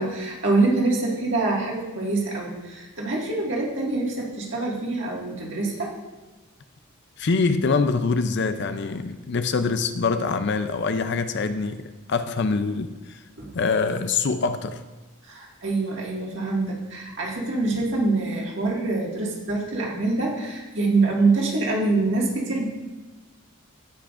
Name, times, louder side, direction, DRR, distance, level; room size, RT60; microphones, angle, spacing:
voice 1, 0.0-6.0 13.4-13.5 15.2-22.6, right 3 dB, 60° right, -3 dB, 1.9 m, -25 dB
voice 2, 7.2-11.8 12.1-13.2 13.5-14.8, left 4 dB, 55° left, 10 dB, 0.5 m, -24 dB
16.5 x 5.9 x 2.5 m, 1.2 s
head